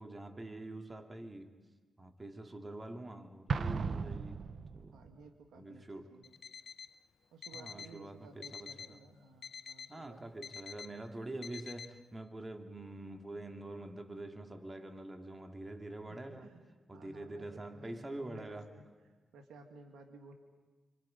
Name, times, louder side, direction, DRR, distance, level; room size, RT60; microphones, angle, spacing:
voice 1, 0.0-1.5 2.0-4.5 4.7-5.0 5.5-6.2 7.5-9.0 9.9-16.5 16.9-18.7, right 2 dB, 25° right, 2.6 m, -45 dB
Explosion, 3.5-5.1, right 5 dB, 65° right, 0.8 m, -36 dB
voice 2, 4.9-6.4 7.3-11.0 16.1-20.3, right 3 dB, 90° right, 2.3 m, -56 dB
Alarm, 6.2-6.9 7.4-8.0 8.4-9.0 9.4-10.0 10.4-10.9 11.4-11.9, left 6 dB, 70° left, 0.8 m, -47 dB
29.5 x 26.0 x 5.4 m
supercardioid pair, 45°, 0 cm